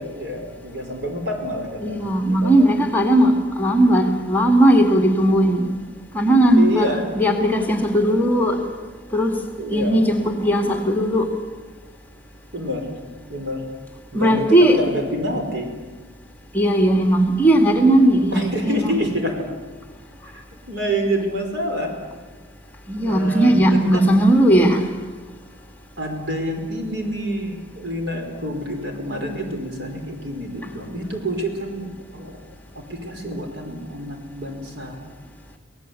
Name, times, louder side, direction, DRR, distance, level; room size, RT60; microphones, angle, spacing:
voice 1, 0.0-2.6 6.5-7.1 9.6-10.1 12.5-13.0 13.3-13.7 14.1-15.7 18.3-19.5 20.3-21.9 23.0-24.1 26.0-32.4 32.7-35.0, equal, 65° right, 5.0 m, -27 dB
voice 2, 1.8-5.7 6.1-8.6 9.1-9.4 9.7-11.3 14.1-14.8 16.5-19.0 22.9-24.9, right 1 dB, 10° left, 2.2 m, -17 dB
24.5 x 18.0 x 8.4 m
head